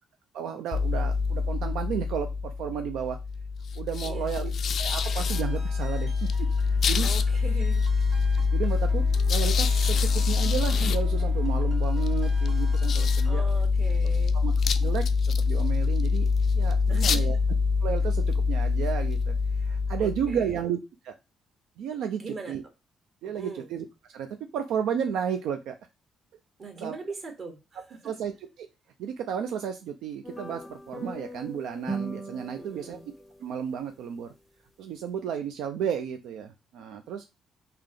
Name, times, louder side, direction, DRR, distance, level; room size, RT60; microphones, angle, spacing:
voice 1, 0.3-3.2 3.8-4.5 4.8-6.1 6.6-7.1 8.5-13.4 14.3-14.5 14.8-15.1 15.4-16.3 16.5-17.4 17.8-19.3 19.6-20.8 21.0-21.1 21.8-22.2 22.5-22.6 23.2-24.3 24.5-25.8 26.8-27.0 28.0-28.3 28.6-28.7 29.0-33.0 33.4-34.3 34.8-37.2, right 8 dB, 85° right, 6 dB, 0.4 m, -32 dB
sound 1, 0.7-20.6, left 4 dB, 60° left, 0.3 m, -25 dB
voice 2, 4.0-4.5 7.0-7.8 13.2-14.4 16.9-17.2 20.0-20.6 22.1-22.6 23.2-23.7 26.6-28.1 32.6-33.0, right 4 dB, 45° right, 4 dB, 1.3 m, -41 dB
sound 2, 4.8-13.4, right 1 dB, 70° right, 1.8 m, -49 dB
sound 3, 30.2-33.6, right 2 dB, 5° left, 0.6 m, -39 dB
3.4 x 2.8 x 3.7 m, 0.25 s
cardioid pair, 90°, 0 cm